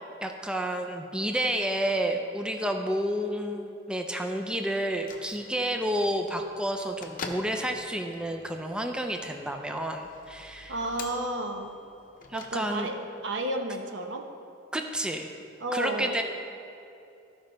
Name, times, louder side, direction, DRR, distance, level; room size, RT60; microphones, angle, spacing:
voice 1, 0.2-10.8 12.3-12.9 14.7-15.3 15.7-16.2, right 1 dB, 5° right, 4 dB, 0.4 m, -30 dB
Bell / Microwave oven, 4.8-13.1, left 4 dB, 45° left, 0.7 m, -46 dB
voice 2, 10.7-11.7 12.3-12.9 13.2-14.2 15.6-16.2, right 2 dB, 75° right, 3 dB, 0.9 m, -32 dB
14.0 x 5.3 x 3.9 m, 2.7 s
head